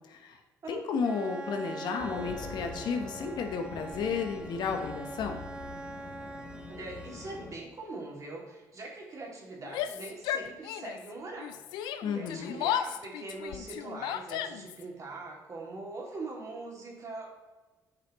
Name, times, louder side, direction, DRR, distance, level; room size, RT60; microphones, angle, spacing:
voice 1, 0.7-5.4 12.0-12.6, left 5 dB, 70° left, 5 dB, 1.1 m, -33 dB
Bowed string instrument, 1.0-7.7, right 2 dB, 10° right, 0.6 m, -44 dB
Race car auto racing, 2.0-7.5, left 5 dB, 45° left, 0.8 m, -45 dB
voice 2, 6.7-17.3, right 3 dB, 45° right, -2 dB, 2.5 m, -42 dB
Yell, 9.6-11.1 11.4-14.8, left 10 dB, 90° left, 0.5 m, -34 dB
9.6 x 5.4 x 3.1 m, 1.2 s
cardioid pair, 80°, 8 cm